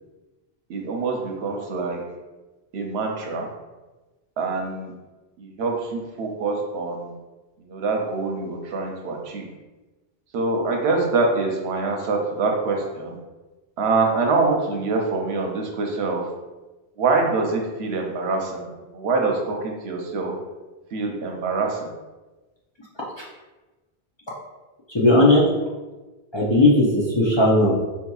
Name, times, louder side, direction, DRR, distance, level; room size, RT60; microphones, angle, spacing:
voice 1, 0.7-2.0 2.7-3.5 4.4-4.9 5.4-7.1 7.6-9.5 10.3-13.2 13.8-16.2 17.0-20.3 20.9-21.9, right 3 dB, 85° right, 1 dB, 0.9 m, -25 dB
voice 2, 24.9-25.4 26.3-27.7, left 1 dB, 40° left, -6 dB, 0.4 m, -17 dB
4.2 x 2.7 x 2.3 m, 1.2 s
omnidirectional pair, 1.1 m